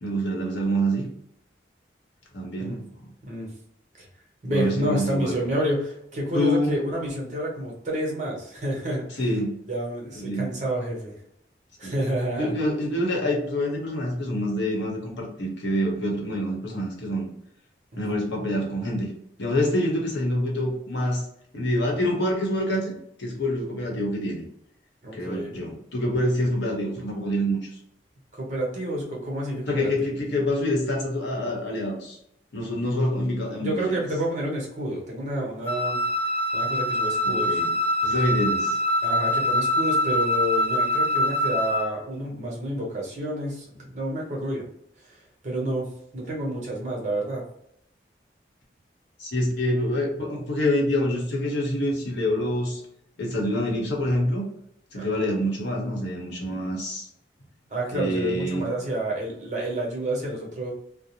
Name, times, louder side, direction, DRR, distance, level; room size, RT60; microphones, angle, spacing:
voice 1, 0.0-1.1 2.3-2.9 4.5-5.5 6.3-6.8 9.2-9.6 10.1-10.5 11.8-12.0 12.4-17.3 18.0-19.1 19.4-21.3 21.5-22.9 23.2-24.4 25.1-27.7 29.7-32.2 32.5-34.0 37.2-37.7 38.0-38.8 49.2-52.8 53.2-54.5 54.9-57.1 57.9-58.6, equal, 85° left, -1 dB, 0.9 m, -26 dB
voice 2, 4.4-9.2 9.7-11.1 11.8-12.6 17.9-18.0 25.0-25.6 28.3-29.9 33.6-36.0 36.5-37.6 39.0-44.7 45.0-45.9 46.1-47.4 54.9-55.2 57.7-60.7, right 1 dB, 40° right, -2 dB, 1.0 m, -29 dB
Wind instrument woodwind instrument, 35.7-41.9, left 1 dB, 10° left, 0.5 m, -24 dB
2.5 x 2.0 x 2.8 m, 0.72 s
head